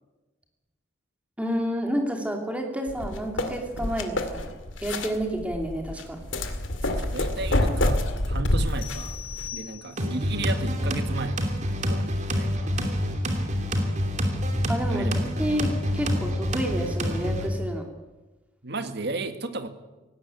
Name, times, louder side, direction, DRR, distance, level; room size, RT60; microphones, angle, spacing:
voice 1, 1.4-4.5 4.8-6.2 14.7-17.9, equal, 5° right, 2 dB, 2.8 m, -29 dB
sound 1, 2.9-9.5, left 1 dB, 75° left, 2.3 m, -27 dB
voice 2, 6.8-9.2 9.5-12.8 14.9-15.2 18.6-19.7, right 3 dB, 60° right, 8 dB, 1.9 m, -34 dB
sound 2, 8.8-10.3, left 11 dB, 50° left, 3.7 m, -40 dB
sound 3, 10.0-17.5, equal, 40° right, 2.8 m, -27 dB
18.0 x 17.5 x 9.2 m, 1.1 s
head